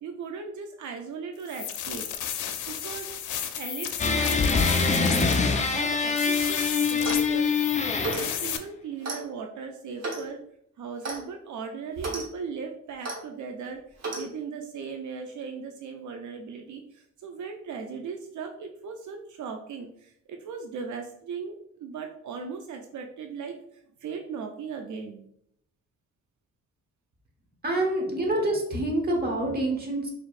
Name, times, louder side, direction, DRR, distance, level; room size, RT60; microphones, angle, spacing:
voice 1, 0.0-2.1 2.7-3.2 3.5-5.3 5.7-7.8 8.1-10.4 10.8-23.6 24.0-25.3, right 6 dB, 80° right, 4 dB, 0.5 m, -38 dB
sound 1, 1.4-8.6, left 9 dB, 85° left, 0.5 m, -34 dB
sound 2, 4.0-8.5, left 5 dB, 25° left, 0.3 m, -24 dB
Clock, 6.9-7.3 8.0-8.3 9.0-9.2 10.0-10.3 11.0-11.2 12.0-12.2 13.0-13.2 14.0-14.3, right 3 dB, 60° right, 1.0 m, -33 dB
voice 2, 27.6-30.1, right 1 dB, 35° right, 0 dB, 1.1 m, -26 dB
4.7 x 3.0 x 2.4 m, 0.72 s
wide cardioid pair, 130°, 29 cm